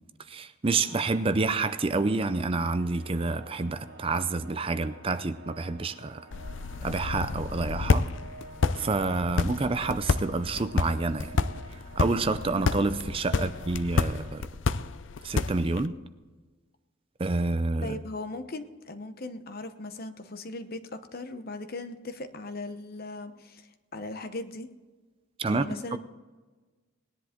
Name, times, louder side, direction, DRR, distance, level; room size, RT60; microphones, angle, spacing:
voice 1, 0.2-6.3 6.8-8.1 8.7-11.4 11.7-14.5 15.2-16.0 17.2-18.0 25.4-26.0, right 3 dB, 25° right, 12 dB, 0.5 m, -28 dB
sound 1, 0.6-14.3, right 2 dB, 55° right, 3.7 m, -50 dB
sound 2, 6.3-15.9, left 4 dB, 65° left, 0.5 m, -30 dB
voice 2, 17.8-24.7 25.5-26.0, left 2 dB, 45° left, 9 dB, 0.9 m, -38 dB
19.0 x 10.5 x 3.7 m, 1.3 s
head